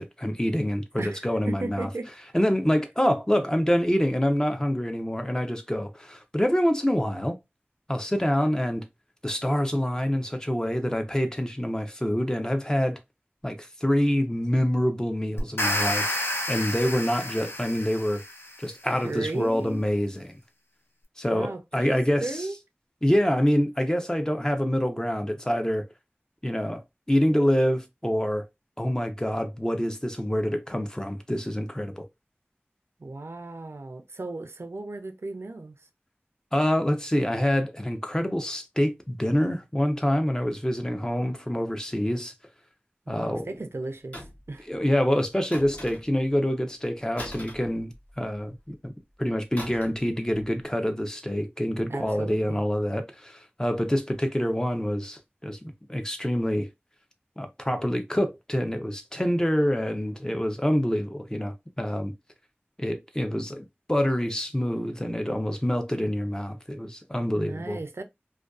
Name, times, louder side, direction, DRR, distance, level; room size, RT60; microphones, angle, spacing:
voice 1, 0.0-1.9 2.3-7.4 7.9-8.8 9.2-13.0 13.4-16.2 16.5-18.2 18.6-20.4 21.2-22.4 23.0-25.9 26.4-26.8 27.1-28.4 28.8-32.1 36.5-42.3 43.1-43.5 44.7-48.9 49.2-56.7 57.4-62.1 62.8-67.8, equal, 15° left, 0.5 m, -26 dB
voice 2, 1.0-2.1 18.9-19.8 21.3-21.6 21.9-22.6 33.0-35.8 43.1-44.7 51.9-52.6 67.2-68.0, right 2 dB, 80° right, 0.4 m, -35 dB
sound 1, 15.4-18.6, left 1 dB, 65° left, 0.6 m, -30 dB
sound 2, 44.1-44.6 45.5-46.3 47.2-48.3 49.6-50.1 50.3-50.6, equal, 35° left, 0.9 m, -41 dB
2.4 x 2.2 x 2.3 m
wide cardioid pair, 45°, 4 cm